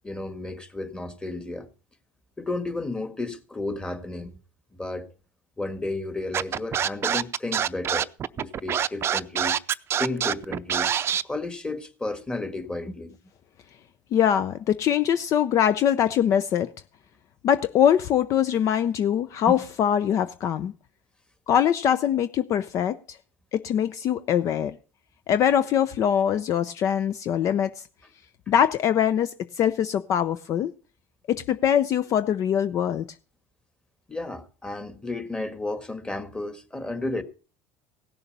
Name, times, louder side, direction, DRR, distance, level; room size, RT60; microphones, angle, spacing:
voice 1, 0.0-1.7 2.4-4.4 4.7-5.1 5.6-8.1 8.3-9.6 10.0-13.2 19.5-19.6 34.1-37.2, left 2 dB, 15° left, 1.7 m, -32 dB
Scratching (performance technique), 6.3-11.2, right 9 dB, 35° right, 0.6 m, -25 dB
voice 2, 14.1-16.7 17.4-20.7 21.5-23.2 23.5-24.8 25.3-27.9 28.5-30.7 31.3-33.0, left 9 dB, 50° left, 0.6 m, -23 dB
16.5 x 7.0 x 5.3 m
supercardioid pair, 100°, 7 cm